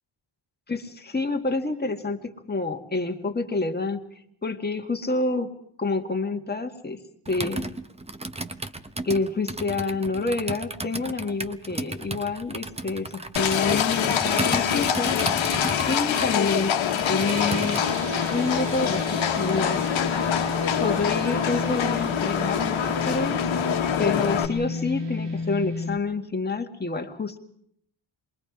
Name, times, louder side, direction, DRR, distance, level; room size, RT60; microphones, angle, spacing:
voice 1, 0.7-4.0 4.4-5.5 5.8-7.7 9.0-15.4 15.9-17.8 18.3-19.9 20.8-23.5 24.0-27.4, left 3 dB, 20° left, 4 dB, 1.8 m, -28 dB
Computer keyboard, 7.3-18.0, right 2 dB, 15° right, 0.8 m, -34 dB
Livestock farm animals working animals, 13.4-24.5, left 9 dB, 75° left, 1.4 m, -25 dB
sound 1, 17.2-26.0, left 1 dB, 60° right, 2.0 m, -32 dB
27.5 x 22.0 x 4.8 m, 0.67 s
cardioid pair, 110°, 47 cm